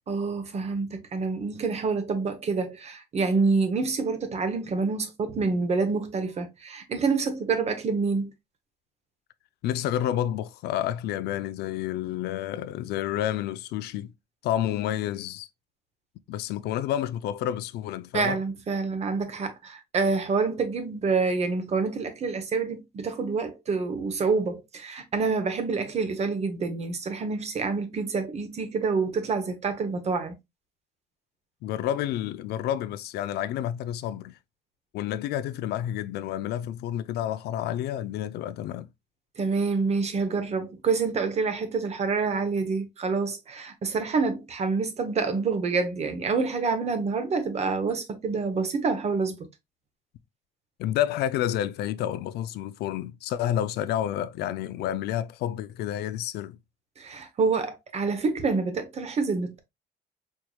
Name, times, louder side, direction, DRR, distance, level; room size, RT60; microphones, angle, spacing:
voice 1, 0.1-8.3 18.1-30.4 39.4-49.5 57.0-59.6, right 4 dB, 40° right, 0.9 m, -27 dB
voice 2, 9.6-14.1 14.4-15.5 16.3-18.4 31.6-34.4 34.9-38.9 50.8-56.6, left 11 dB, 75° left, 0.4 m, -29 dB
4.5 x 3.0 x 2.2 m
cardioid pair, 110°, 17 cm